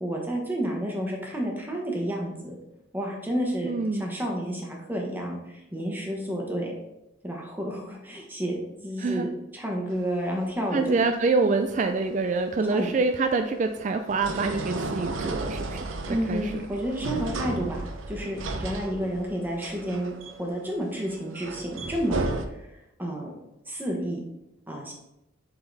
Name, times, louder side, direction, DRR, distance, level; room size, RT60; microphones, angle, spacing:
voice 1, 0.0-2.5 2.9-3.7 4.0-6.7 7.2-8.5 8.8-11.0 12.7-12.9 16.1-20.1 20.4-22.3 23.0-23.3 23.7-24.2 24.7-24.9, equal, 10° right, 0 dB, 1.1 m, -30 dB
voice 2, 3.6-4.0 9.0-9.3 10.7-15.9 16.3-16.5, right 3 dB, 35° right, 7 dB, 0.3 m, -26 dB
sound 1, 9.9-22.4, right 2 dB, 70° right, 0.7 m, -35 dB
7.9 x 3.9 x 4.0 m, 0.90 s
head